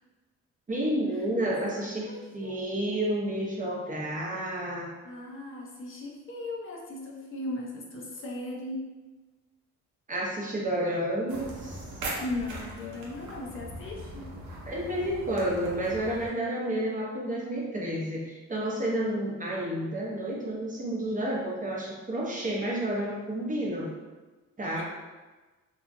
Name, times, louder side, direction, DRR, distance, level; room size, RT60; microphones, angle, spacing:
voice 1, 0.7-4.9 10.1-11.9 14.6-23.9 24.6-24.8, right 1 dB, 25° right, -3 dB, 0.7 m, -30 dB
voice 2, 1.7-2.6 5.0-8.9 12.2-14.3 24.6-24.8, left 2 dB, 45° left, -2 dB, 0.6 m, -38 dB
sound 1, 11.3-16.3, right 1 dB, 85° right, 0.7 m, -40 dB
2.9 x 2.3 x 2.6 m, 1.2 s
cardioid pair, 90°, 30 cm